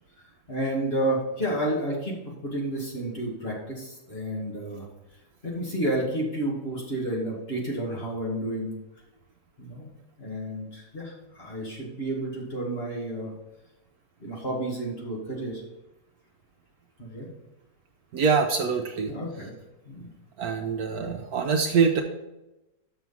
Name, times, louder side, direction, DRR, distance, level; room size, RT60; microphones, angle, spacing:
voice 1, 0.5-2.2 2.4-4.9 5.4-8.8 9.6-9.9 10.2-13.3 14.2-15.6 17.0-17.3 19.1-19.5 19.8-20.1 21.0-21.1, right 1 dB, 35° left, -4 dB, 2.3 m, -31 dB
voice 2, 18.1-19.1 20.4-22.0, right 5 dB, 65° right, 4 dB, 1.1 m, -24 dB
6.8 x 6.0 x 5.6 m, 0.97 s
omnidirectional pair, 1.9 m